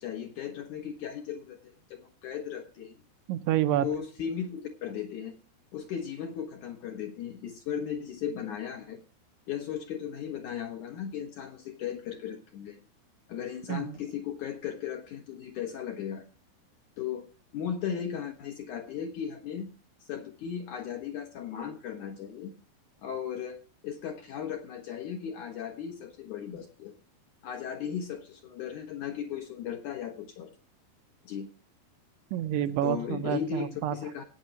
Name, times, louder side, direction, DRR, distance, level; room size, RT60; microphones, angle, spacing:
voice 1, 0.0-2.9 3.8-5.4 5.7-9.0 9.5-12.8 13.3-16.2 17.0-19.7 20.0-22.5 23.0-26.9 27.4-30.5 31.2-31.5 32.8-34.2, left 8 dB, 60° left, 4 dB, 2.2 m, -36 dB
voice 2, 3.3-3.9 13.7-14.0 32.3-34.0, right 12 dB, 80° right, 11 dB, 2.8 m, -28 dB
16.5 x 9.8 x 2.9 m, 0.34 s
omnidirectional pair, 4.9 m